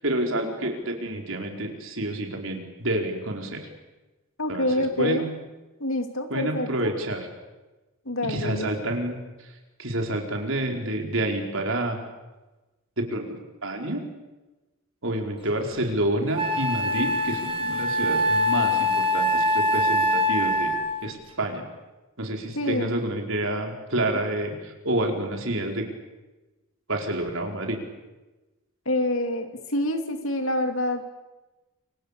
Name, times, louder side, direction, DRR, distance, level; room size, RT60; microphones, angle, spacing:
voice 1, 0.0-3.7 4.5-5.3 6.3-7.3 8.2-12.0 13.0-14.0 15.0-20.7 21.0-21.6 22.2-25.8 26.9-27.8, right 1 dB, 60° right, 2 dB, 4.9 m, -29 dB
voice 2, 4.4-5.3 5.8-6.9 8.0-8.7 22.5-22.9 28.8-31.0, left 1 dB, 65° left, 6 dB, 3.0 m, -27 dB
Wind instrument woodwind instrument, 15.7-15.8 16.4-21.0, left 1 dB, 25° right, 4.1 m, -23 dB
29.0 x 26.0 x 6.9 m, 1.1 s
head